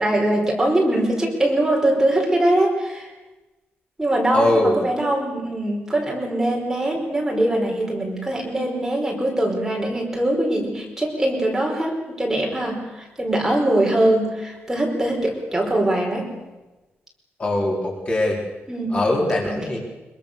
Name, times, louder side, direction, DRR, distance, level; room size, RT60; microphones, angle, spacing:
voice 1, 0.0-3.1 4.0-16.3 18.7-19.8, right 1 dB, 10° right, -1 dB, 4.9 m, -22 dB
voice 2, 4.3-4.8 17.4-18.4 18.9-19.8, left 1 dB, 30° left, -1 dB, 4.2 m, -21 dB
25.0 x 23.5 x 6.9 m, 1.1 s
wide cardioid pair, 180°, 4 cm